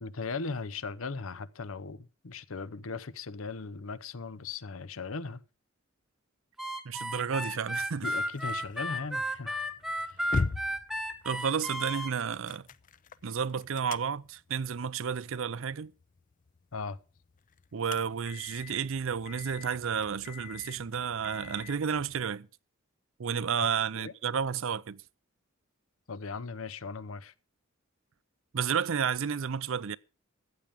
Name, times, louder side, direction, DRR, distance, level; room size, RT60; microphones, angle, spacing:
voice 1, 0.0-5.4 8.0-9.6 10.0-10.2 16.7-17.0 23.6-23.7 24.0-24.1 26.1-27.3, left 4 dB, 75° left, 0.8 m, -38 dB
Harmonica, 6.6-12.1, equal, ahead, 1.2 m, -34 dB
voice 2, 6.8-8.1 11.2-12.7 13.2-15.9 17.7-22.5 23.2-25.0 28.5-30.0, right 7 dB, 70° right, 0.5 m, -31 dB
sound 1, 7.6-22.3, left 4 dB, 40° left, 0.6 m, -42 dB
14.5 x 8.8 x 5.1 m
head